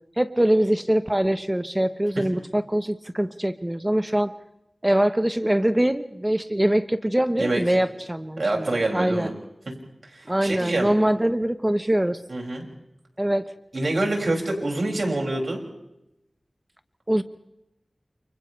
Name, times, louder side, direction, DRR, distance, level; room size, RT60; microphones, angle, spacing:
voice 1, 0.2-4.3 4.8-9.3 10.3-12.2 13.2-13.5 17.1-17.2, right 1 dB, 15° right, 10 dB, 1.1 m, -23 dB
voice 2, 7.4-7.8 8.4-9.3 10.0-11.0 12.3-12.6 13.7-15.6, right 2 dB, 70° right, 0 dB, 6.4 m, -26 dB
30.0 x 29.5 x 3.4 m, 0.88 s
wide cardioid pair, 60°, 0 cm